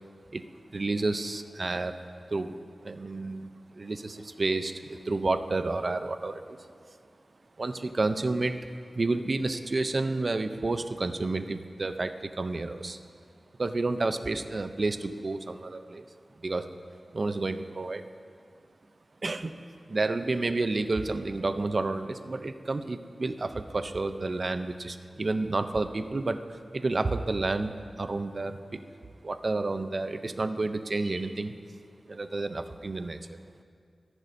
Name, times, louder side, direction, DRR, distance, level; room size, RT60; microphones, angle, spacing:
voice 1, 0.3-2.0 2.3-2.6 2.8-6.7 7.6-8.7 8.9-13.0 13.6-16.1 16.4-16.7 17.1-18.1 19.2-28.8 29.2-31.5 32.1-33.4, right 3 dB, 45° right, 9 dB, 0.6 m, -30 dB
23.5 x 11.0 x 2.7 m, 2.3 s
wide cardioid pair, 100°, 0 cm